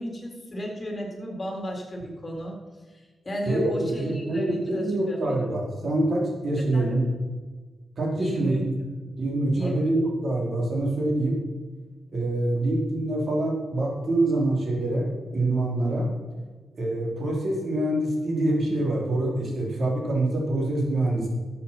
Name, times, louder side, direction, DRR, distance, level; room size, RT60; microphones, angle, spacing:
voice 1, 0.0-2.6 2.9-5.4 6.6-7.0 8.2-8.6 9.5-9.9, equal, 30° left, 0 dB, 3.9 m, -34 dB
voice 2, 3.5-7.1 8.0-8.7 9.2-11.4 12.1-16.1 16.8-21.3, right 1 dB, 55° right, -1 dB, 4.3 m, -25 dB
12.5 x 8.3 x 6.0 m, 1.3 s
cardioid pair, 55°, 0 cm